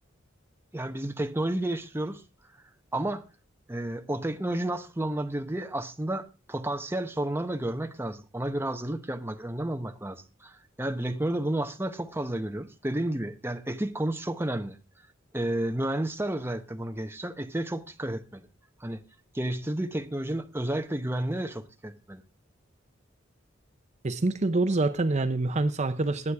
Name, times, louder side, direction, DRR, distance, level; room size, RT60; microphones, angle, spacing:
voice 1, 0.7-2.2 2.9-3.2 3.7-14.8 15.3-18.5 18.8-19.0 19.3-22.2, right 1 dB, 10° right, 0.9 m, -31 dB
voice 2, 24.0-26.3, right 2 dB, 35° right, 0.7 m, -26 dB
21.0 x 8.4 x 3.5 m
head